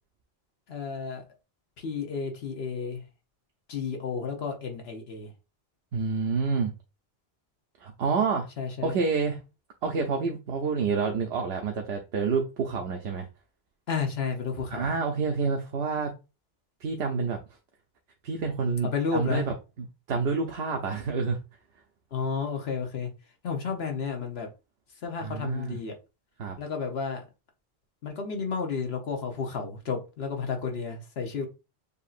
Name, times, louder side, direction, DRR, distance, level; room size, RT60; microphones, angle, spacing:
voice 1, 0.7-1.2 1.8-3.0 3.7-5.3 8.6-9.0 13.9-14.9 18.9-19.4 22.1-23.1 23.4-24.5 25.0-25.9 26.6-27.2 28.0-31.5, left 5 dB, 75° left, 3 dB, 1.1 m, -32 dB
voice 2, 5.9-6.7 7.8-8.5 8.8-9.4 9.8-13.3 14.7-16.1 16.8-17.4 18.2-21.4 25.2-25.8 26.4-26.6, right 5 dB, 80° right, 3 dB, 0.9 m, -28 dB
6.7 x 2.7 x 2.4 m, 0.29 s
omnidirectional pair, 1.1 m